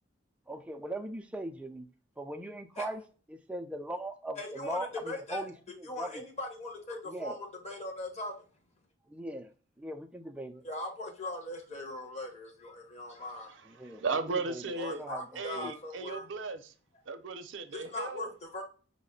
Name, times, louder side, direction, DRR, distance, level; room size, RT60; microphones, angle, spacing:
voice 1, 0.5-1.9 2.2-3.0 3.3-4.9 5.3-6.2 7.1-7.4 9.1-9.5 9.8-10.6 13.7-14.0 14.5-14.6 14.9-15.2 15.6-15.7, right 1 dB, 5° right, 0.4 m, -39 dB
voice 2, 4.4-5.5 5.8-8.3 10.6-13.6 14.8-16.3 17.7-18.6, left 1 dB, 35° left, 1.0 m, -40 dB
voice 3, 13.5-15.0 15.4-16.7 17.1-18.3, right 4 dB, 70° right, 0.6 m, -36 dB
5.0 x 2.1 x 3.8 m
head